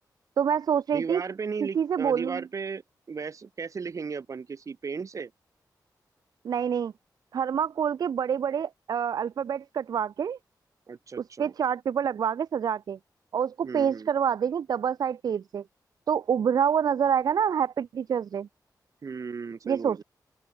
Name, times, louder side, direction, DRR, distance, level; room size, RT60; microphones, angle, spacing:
voice 1, 0.4-1.2 1.6-2.4 6.4-6.9 7.3-10.4 11.2-13.0 13.3-15.6 16.1-18.5 19.7-20.0, right 8 dB, 65° right, 0.3 m, -27 dB
voice 2, 0.9-2.8 3.1-5.3 10.9-11.5 13.6-14.1 19.0-20.0, right 5 dB, 50° right, 1.0 m, -35 dB
open air
wide cardioid pair, 145°, 7 cm